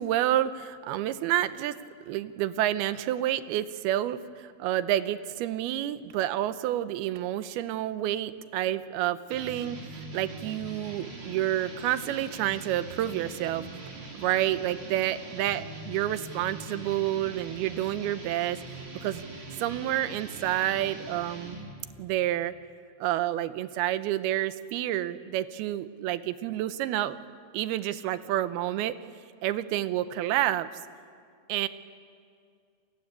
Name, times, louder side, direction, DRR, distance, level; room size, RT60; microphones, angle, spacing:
voice 1, 0.0-1.8 2.1-9.8 10.1-13.7 14.1-18.6 19.0-19.2 19.6-21.6 22.0-22.5 23.0-27.2 27.5-29.0 29.4-30.7 31.5-31.7, right 13 dB, 80° right, 13 dB, 2.6 m, -29 dB
sound 1, 9.3-21.8, right 2 dB, 35° right, 4.2 m, -42 dB
29.0 x 21.0 x 9.6 m, 2.3 s
omnidirectional pair, 4.6 m